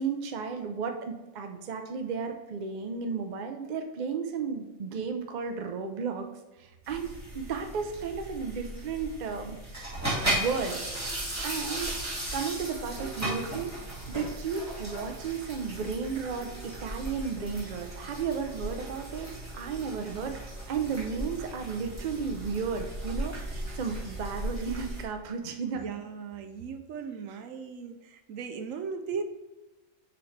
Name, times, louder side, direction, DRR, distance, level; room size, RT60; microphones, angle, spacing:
voice 1, 0.0-6.3 6.6-9.6 10.2-10.8 11.4-11.9 12.3-13.7 14.1-25.9, right 5 dB, 45° right, 5 dB, 0.6 m, -34 dB
sound 1, 6.8-25.0, right 1 dB, 10° right, 2.0 m, -36 dB
voice 2, 25.7-29.2, right 6 dB, 75° right, 8 dB, 1.0 m, -37 dB
6.9 x 5.2 x 3.3 m, 1.1 s
omnidirectional pair, 1.4 m